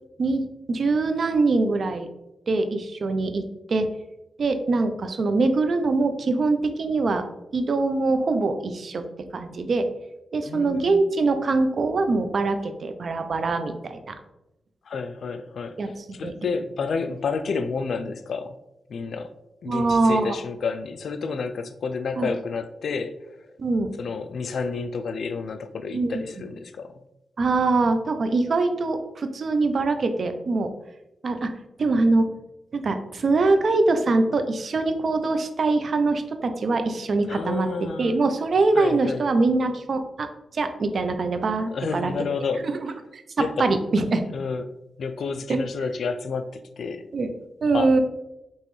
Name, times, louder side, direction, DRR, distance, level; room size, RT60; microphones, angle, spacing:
voice 1, 0.2-2.1 2.5-3.9 4.4-7.2 7.5-9.0 9.3-9.9 10.3-14.2 15.8-15.9 16.2-16.3 19.7-20.4 22.2-22.3 23.6-23.9 25.9-26.2 27.4-30.7 31.2-31.5 31.8-32.3 32.7-37.7 38.0-42.1 42.8-44.2 45.5-45.6 47.1-47.3 47.6-48.0, right 3 dB, 60° right, 8 dB, 0.5 m, -23 dB
voice 2, 10.4-11.0 14.8-18.6 18.9-19.3 19.6-23.5 24.0-27.0 37.3-38.2 38.7-39.3 41.7-42.7 43.4-43.7 44.3-44.7 45.0-47.1 47.7-48.0, left 4 dB, 70° left, 10 dB, 0.3 m, -30 dB
5.4 x 3.0 x 3.1 m, 0.90 s
cardioid pair, 80°, 0 cm